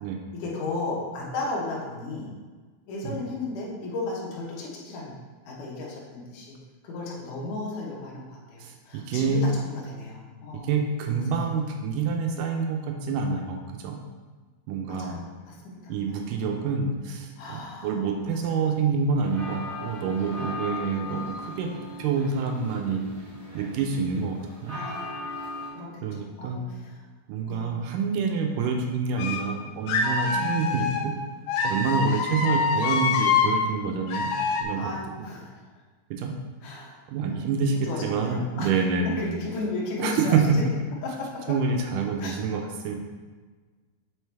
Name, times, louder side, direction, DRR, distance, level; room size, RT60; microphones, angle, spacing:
voice 1, 0.3-2.3 2.9-6.6 6.8-10.8 14.9-16.4 17.4-17.9 18.5-18.7 24.7-25.0 25.7-27.0 27.4-27.8 30.2-31.0 32.1-32.4 32.8-32.9 34.8-35.6 36.6-37.0 37.3-38.7 39.2-40.6 41.0-41.5 42.2-42.3, left 2 dB, 65° left, -4 dB, 2.5 m, -35 dB
voice 2, 8.6-9.5 10.5-14.0 14.7-15.2 15.9-21.7 22.0-23.0 23.5-24.8 26.0-26.6 27.3-31.1 31.6-34.3 34.6-34.9 36.1-36.3 37.1-39.3 40.0-40.4 41.5-42.9, right 5 dB, 80° right, 2 dB, 1.9 m, -27 dB
sound 1, 19.1-25.7, left 1 dB, 30° right, 1.2 m, -38 dB
sound 2, 29.2-29.5 29.9-31.1 31.5-33.6 34.1-34.6, left 5 dB, 80° left, 2.4 m, -25 dB
7.7 x 4.7 x 3.4 m, 1.4 s
omnidirectional pair, 4.3 m